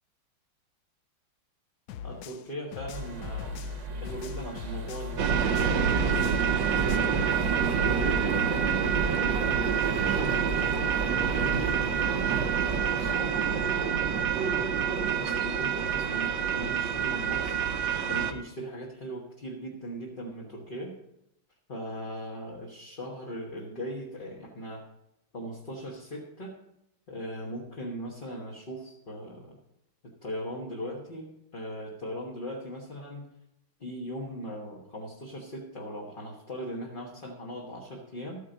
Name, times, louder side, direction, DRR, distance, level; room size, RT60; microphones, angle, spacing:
sound 1, 1.9-5.1 5.4-7.2, left 9 dB, 85° left, 0.8 m, -41 dB
voice 1, 2.0-3.5 4.0-5.5 6.0-7.4 7.9-12.3 12.7-14.6 15.0-17.6 18.1-20.9 21.7-24.8 25.3-26.5 27.1-29.6 30.0-33.3 33.8-38.4, equal, 30° left, -2 dB, 1.1 m, -39 dB
sound 2, 2.9-13.2, equal, 45° right, 1.2 m, -38 dB
sound 3, 5.2-18.3, right 7 dB, 70° right, 1.4 m, -27 dB
13.0 x 8.9 x 3.9 m, 0.83 s
omnidirectional pair, 2.3 m